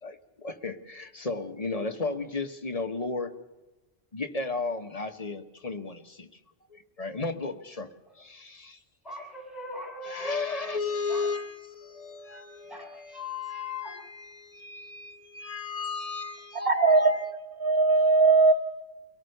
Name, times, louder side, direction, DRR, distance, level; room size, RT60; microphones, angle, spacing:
voice 1, 0.0-3.4 4.1-6.3 6.7-8.8 10.0-12.7 13.5-17.3, left 3 dB, 30° left, 7 dB, 1.3 m, -34 dB
voice 2, 9.0-11.3 11.8-14.0, left 4 dB, ahead, 0 dB, 6.9 m, -41 dB
voice 3, 16.6-17.3 17.6-18.5, right 3 dB, 50° right, 7 dB, 1.4 m, -20 dB
24.5 x 17.5 x 6.7 m, 1.1 s
omnidirectional pair, 1.3 m